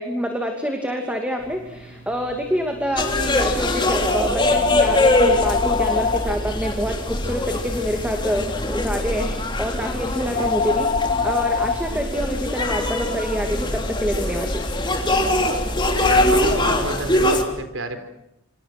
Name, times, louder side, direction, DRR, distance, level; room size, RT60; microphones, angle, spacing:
voice 1, 0.0-11.0 11.2-14.7, equal, 5° right, 3 dB, 2.6 m, -26 dB
sound 1, 1.4-11.7, left 5 dB, 40° left, 3.7 m, -27 dB
sound 2, 3.0-17.4, left 1 dB, 25° left, 3.3 m, -23 dB
voice 2, 15.9-18.0, right 2 dB, 70° right, 8 dB, 3.8 m, -29 dB
28.0 x 26.0 x 6.1 m, 0.85 s
head